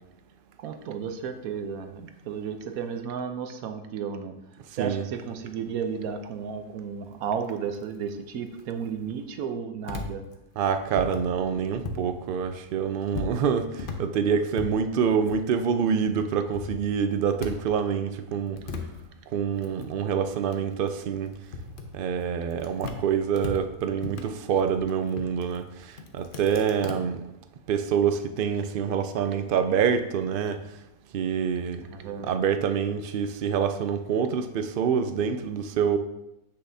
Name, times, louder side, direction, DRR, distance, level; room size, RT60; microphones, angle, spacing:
voice 1, 0.6-4.3 4.7-10.2 31.8-32.3, right 7 dB, 85° right, 7 dB, 1.2 m, -33 dB
voice 2, 4.8-5.1 10.6-18.6 19.3-21.3 21.9-27.2 27.7-30.6 31.1-31.8 32.2-36.0, right 7 dB, 70° right, 8 dB, 0.5 m, -26 dB
sound 1, 9.9-12.1 12.4-15.9 16.3-17.8 18.1-23.0 23.4-26.9, left 4 dB, 50° left, 0.8 m, -38 dB
7.7 x 6.6 x 2.7 m, 0.89 s
omnidirectional pair, 1.5 m